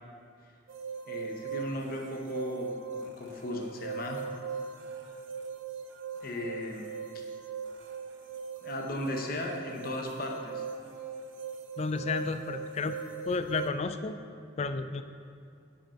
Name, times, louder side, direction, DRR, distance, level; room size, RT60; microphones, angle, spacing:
sound 1, 0.7-13.7, right 6 dB, 80° right, 0.6 m, -40 dB
voice 1, 1.1-4.2 6.2-6.9 7.1-7.2 8.6-10.6, left 1 dB, 50° left, 1 dB, 0.9 m, -36 dB
voice 2, 11.8-13.0 13.3-14.2 14.6-15.0, left 4 dB, 35° left, 10 dB, 0.3 m, -32 dB
9.3 x 5.3 x 4.5 m, 2.4 s
head